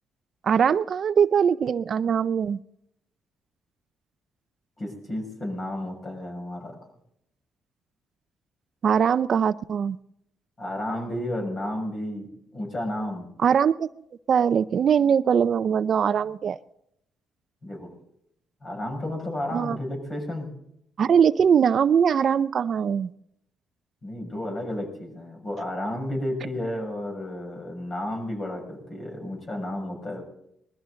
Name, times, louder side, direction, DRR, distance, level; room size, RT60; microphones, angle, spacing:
voice 1, 0.4-2.6 8.8-10.0 13.4-13.9 14.3-16.6 19.5-19.8 21.0-23.1, right 7 dB, 55° right, 14 dB, 0.5 m, -21 dB
voice 2, 4.8-6.8 10.6-13.3 17.6-17.9 18.6-20.5 24.0-30.2, left 1 dB, 40° left, 2 dB, 6.3 m, -32 dB
20.5 x 13.5 x 3.9 m, 0.74 s
cardioid pair, 90°, 0 cm